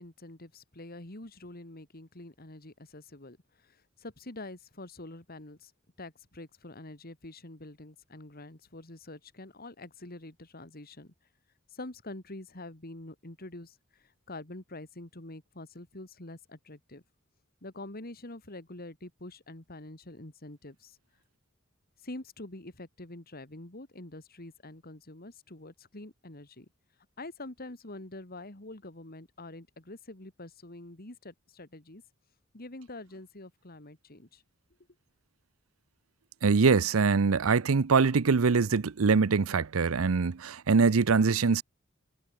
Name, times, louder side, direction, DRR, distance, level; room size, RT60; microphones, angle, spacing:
voice 1, 0.0-3.4 3.6-5.7 6.0-11.1 11.7-17.0 17.6-21.0 22.0-26.7 27.2-32.0 32.5-34.4, left 2 dB, 45° left, 2.7 m, -46 dB
voice 2, 36.4-41.6, right 4 dB, 80° right, 0.7 m, -23 dB
head